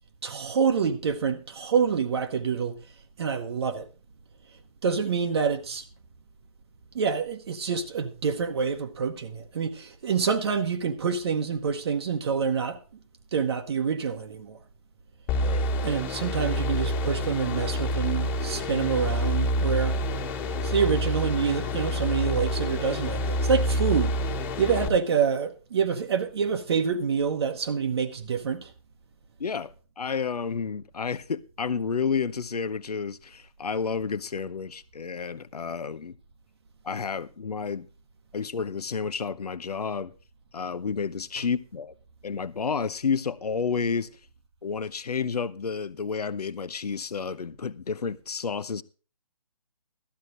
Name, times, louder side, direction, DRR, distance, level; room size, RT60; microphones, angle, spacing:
voice 1, 0.2-2.8 3.2-3.9 4.8-5.9 6.9-12.8 13.3-14.6 15.8-20.0 20.6-28.7, right 6 dB, 45° right, 0.9 m, -27 dB
sound 1, 15.3-24.9, equal, 20° left, 1.7 m, -27 dB
voice 2, 29.4-36.1 36.8-37.9 38.3-40.1 40.5-41.9 42.2-44.1 44.6-48.8, left 5 dB, 90° left, 0.7 m, -30 dB
16.5 x 12.5 x 2.5 m
hypercardioid pair, 155°, 19 cm